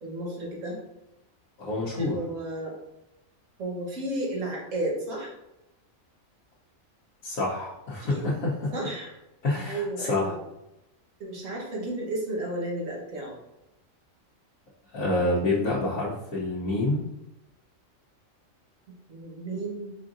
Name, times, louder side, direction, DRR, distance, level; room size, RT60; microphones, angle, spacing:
voice 1, 0.0-0.8 1.9-2.8 3.6-5.3 8.0-8.2 8.7-9.1 9.6-10.4 11.2-13.3 19.1-20.0, right 1 dB, 70° right, -2 dB, 1.5 m, -33 dB
voice 2, 1.6-2.2 7.2-8.7 9.4-10.4 14.9-17.0, left 2 dB, 85° left, -8 dB, 1.3 m, -27 dB
5.0 x 3.6 x 2.5 m, 0.90 s
omnidirectional pair, 1.4 m